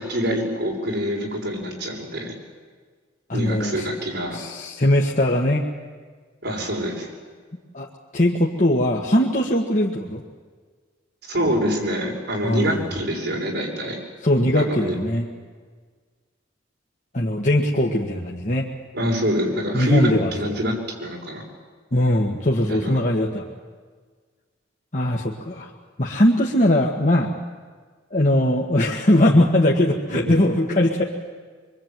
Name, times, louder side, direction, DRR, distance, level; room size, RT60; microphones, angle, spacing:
voice 1, 0.0-2.3 3.3-4.4 6.4-7.1 11.3-14.0 14.5-15.0 18.9-20.7 21.0-21.4 22.7-23.0 30.1-30.2 30.7-31.1, equal, 60° right, -1 dB, 6.9 m, -25 dB
voice 2, 3.3-3.9 4.3-5.6 7.7-7.9 8.1-10.2 12.4-12.9 14.2-15.3 17.1-18.7 19.7-20.6 21.9-23.4 24.9-25.7 26.0-27.3 28.1-31.0, left 1 dB, 40° left, -1 dB, 1.7 m, -20 dB
25.0 x 23.5 x 9.3 m, 1.6 s
head